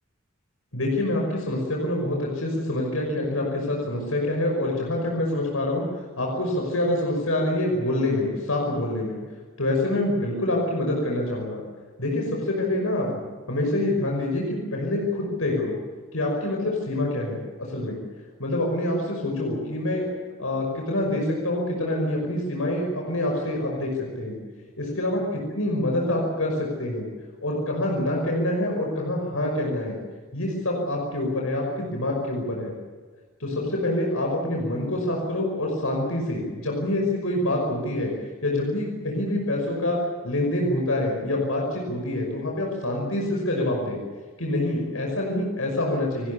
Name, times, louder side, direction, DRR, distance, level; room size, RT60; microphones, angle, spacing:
voice 1, 0.7-9.2 9.6-11.6 12.0-13.1 13.5-15.8 16.1-17.4 17.7-18.0 18.4-20.1 20.4-23.9 24.2-24.4 24.8-27.1 27.4-30.0 30.3-32.7 33.4-38.1 38.4-40.0 40.2-44.0 44.4-46.3, left 1 dB, 80° left, 0 dB, 5.8 m, -26 dB
29.5 x 19.5 x 7.1 m, 1.4 s
head